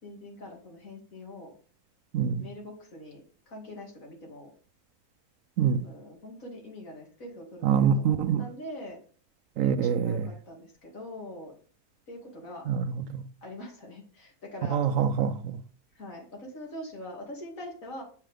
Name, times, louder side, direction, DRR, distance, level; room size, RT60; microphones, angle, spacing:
voice 1, 0.0-1.5 2.4-4.5 5.8-9.0 9.6-11.5 12.1-12.6 13.4-14.8 15.9-18.0, left 1 dB, 65° left, 2.7 m, -43 dB
voice 2, 2.1-2.5 5.6-5.9 7.6-8.5 9.6-10.3 12.7-13.2 14.7-15.6, right 7 dB, 70° right, 0.9 m, -25 dB
7.5 x 5.8 x 3.4 m
omnidirectional pair, 1.6 m